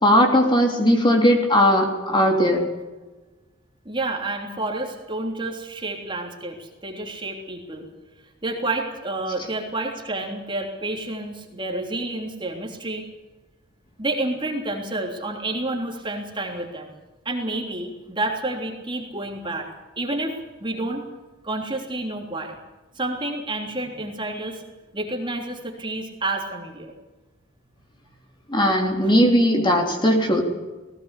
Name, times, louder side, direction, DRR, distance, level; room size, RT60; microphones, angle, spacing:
voice 1, 0.0-2.6 28.5-30.4, equal, 25° left, 2 dB, 3.4 m, -18 dB
voice 2, 3.8-7.9 8.4-13.1 14.0-16.9 17.2-19.7 20.0-21.0 21.4-22.6 22.9-24.6 24.9-26.9 29.0-29.2, right 2 dB, 25° right, 1 dB, 3.4 m, -29 dB
19.0 x 17.5 x 8.4 m, 1.2 s
head